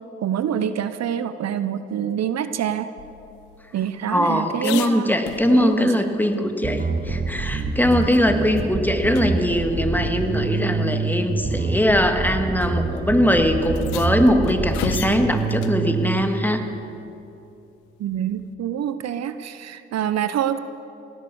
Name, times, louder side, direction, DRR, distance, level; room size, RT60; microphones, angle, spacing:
voice 1, 0.2-2.9 3.7-5.1 5.5-5.9 18.0-20.6, right 9 dB, 60° right, 12 dB, 0.7 m, -26 dB
sound 1, 3.0-6.0 6.3-6.4 6.8-8.2 8.6-8.7 9.1-9.3 10.3-10.4 11.3-11.6 12.6-12.7 13.0-13.1 13.6-15.8 18.1-18.5, left 11 dB, 85° left, 0.7 m, -36 dB
voice 2, 4.1-16.7, equal, 5° left, 5 dB, 1.9 m, -21 dB
Bass guitar, 6.6-16.2, right 4 dB, 30° right, 1.3 m, -26 dB
17.0 x 11.0 x 7.1 m, 2.8 s
hypercardioid pair, 40°, 29 cm